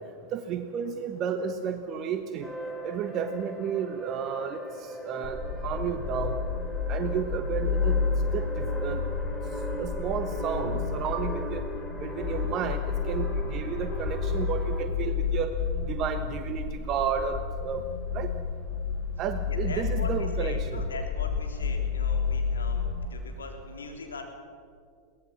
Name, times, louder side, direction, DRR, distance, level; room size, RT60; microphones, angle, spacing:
voice 1, 0.3-2.5 2.8-6.4 6.9-8.0 8.3-9.0 9.8-11.6 12.0-15.5 15.8-17.8 18.1-18.3 19.2-20.8, right 7 dB, 35° right, 8 dB, 1.1 m, -32 dB
sound 1, 2.4-14.8, right 1 dB, 5° left, 3.1 m, -39 dB
sound 2, 5.2-23.0, left 5 dB, 30° left, 3.1 m, -30 dB
voice 2, 19.5-22.9 23.1-24.2, left 4 dB, 70° left, 3 dB, 3.6 m, -41 dB
23.0 x 18.0 x 7.2 m, 2.3 s
figure-of-eight pair, 90°, 0 cm